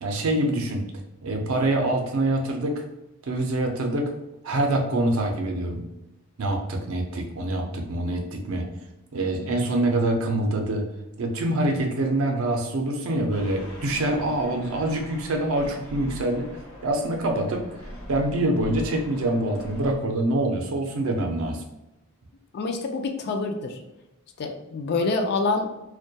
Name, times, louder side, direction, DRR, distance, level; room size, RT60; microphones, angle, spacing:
voice 1, 0.0-0.8 1.2-2.8 3.2-4.1 4.4-5.8 6.4-8.7 9.1-10.8 11.2-17.7 18.1-21.6, right 1 dB, 70° right, 2 dB, 0.5 m, -25 dB
sound 1, 13.3-20.0, equal, 70° left, 0.8 m, -42 dB
voice 2, 22.5-23.8 24.4-25.7, left 3 dB, 50° left, 5 dB, 0.3 m, -26 dB
2.2 x 2.2 x 2.7 m, 0.94 s
head